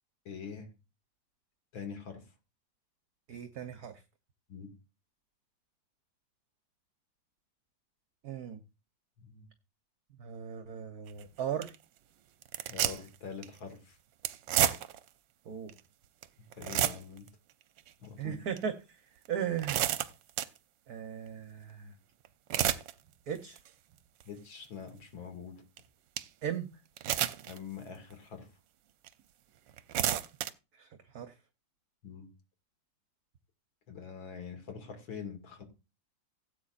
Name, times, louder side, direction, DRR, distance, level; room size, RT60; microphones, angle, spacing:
voice 1, 0.2-0.7 1.7-2.2 4.5-4.7 9.2-9.5 12.7-14.0 16.6-17.3 18.0-18.4 24.2-25.6 27.5-28.5 32.0-32.3 33.9-35.6, left 6 dB, 85° left, 5 dB, 3.0 m, -44 dB
voice 2, 3.3-3.9 8.2-8.6 10.2-11.7 15.4-15.7 18.2-19.0 19.3-19.9 20.9-21.9 23.3-23.6 26.4-26.7 30.7-31.3, right 8 dB, 55° right, 8 dB, 1.4 m, -37 dB
sound 1, 11.1-11.2 11.6-11.8 12.4-13.2 13.4-13.6 14.2-15.1 15.7-15.8 16.2-16.3 16.5-17.3 17.8-17.9 18.6-18.7 19.3-20.6 22.2-22.9 23.4-23.7 24.2-24.3 25.8-25.9 26.2-26.3 27.0-27.6 28.1-28.2 29.0-29.1 29.7-30.5, right 11 dB, 75° right, 1.4 m, -30 dB
17.0 x 8.6 x 2.5 m, 0.28 s
omnidirectional pair, 2.1 m